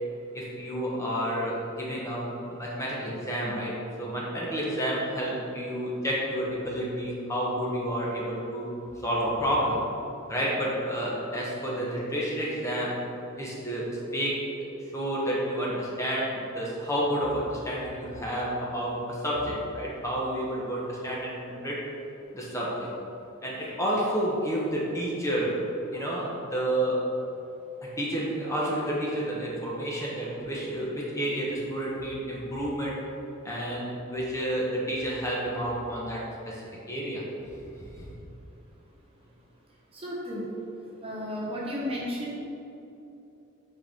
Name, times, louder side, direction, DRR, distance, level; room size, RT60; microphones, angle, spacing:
voice 1, 0.3-8.7 9.0-9.8 10.3-13.0 13.4-14.7 14.9-21.8 22.3-22.9 23.4-25.6 25.9-27.0 27.8-33.0 33.4-37.2 37.5-38.1, equal, 15° left, -5 dB, 1.2 m, -30 dB
voice 2, 39.9-40.5 41.0-42.3, left 1 dB, 25° right, -4 dB, 0.8 m, -33 dB
7.7 x 4.7 x 3.6 m, 2.8 s
head